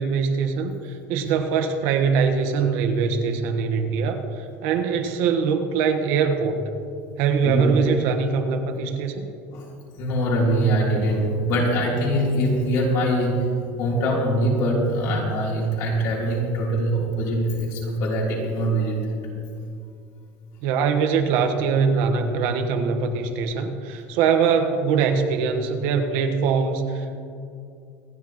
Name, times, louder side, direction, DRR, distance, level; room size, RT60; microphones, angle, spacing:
voice 1, 0.0-6.6 7.2-9.3 20.6-27.1, right 6 dB, 60° right, 5 dB, 1.3 m, -22 dB
voice 2, 7.4-7.7 9.5-9.7 9.9-13.5 13.8-19.2, right 1 dB, 50° left, -3 dB, 3.2 m, -23 dB
26.0 x 10.0 x 3.0 m, 2.6 s
cardioid pair, 175°, 7 cm